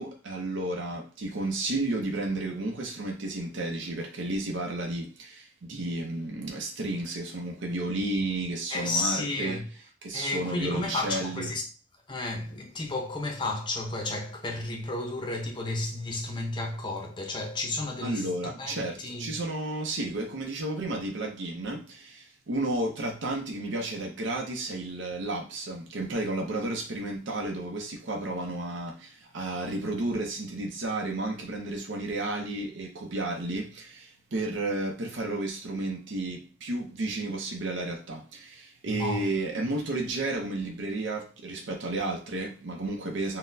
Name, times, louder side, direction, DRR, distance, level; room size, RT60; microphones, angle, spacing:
voice 1, 0.0-9.6 10.0-11.5 18.0-43.4, right 2 dB, 75° right, 0.6 m, -32 dB
voice 2, 8.7-9.7 10.1-11.6 12.1-19.3 38.9-39.3, left 2 dB, 25° left, 0.6 m, -32 dB
3.9 x 2.1 x 2.6 m
head